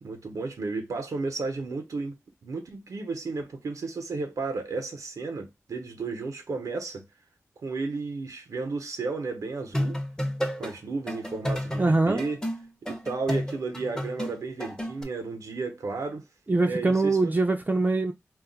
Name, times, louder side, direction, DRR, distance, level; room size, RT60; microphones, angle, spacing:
voice 1, 0.0-2.2 2.4-7.0 7.6-10.0 10.6-12.4 12.8-16.3 16.6-17.3, right 3 dB, 85° right, 0.7 m, -33 dB
sound 1, 9.6-10.7 11.1-15.0, equal, 10° left, 0.6 m, -31 dB
voice 2, 11.8-12.2 16.5-18.1, right 3 dB, 30° right, 0.4 m, -23 dB
2.3 x 2.1 x 3.8 m
cardioid pair, 50°, 6 cm